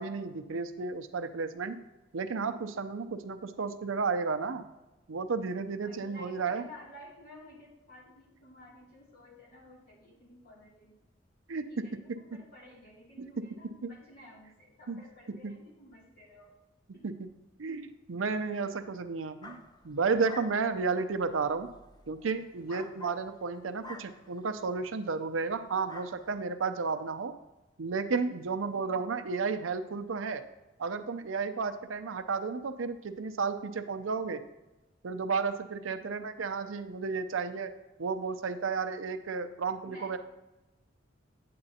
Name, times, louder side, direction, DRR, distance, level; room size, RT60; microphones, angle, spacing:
voice 1, 0.0-1.8 2.1-4.6 5.1-6.6 11.5-11.8 13.4-13.5 13.8-13.9 14.9-15.0 15.4-15.5 17.0-17.3 17.6-21.7 22.1-27.3 27.8-30.4 30.8-34.4 35.0-37.7 38.0-40.2, right 4 dB, 90° right, 10 dB, 0.6 m, -32 dB
voice 2, 5.8-11.0 11.5-16.5 16.9-17.1 28.7-29.0 35.9-36.2 39.8-40.2, left 1 dB, 50° left, -4 dB, 2.7 m, -53 dB
sound 1, 19.4-24.9 25.3-25.6 25.8-26.3, left 1 dB, 20° left, 0.6 m, -50 dB
8.8 x 8.5 x 2.8 m, 1.0 s
head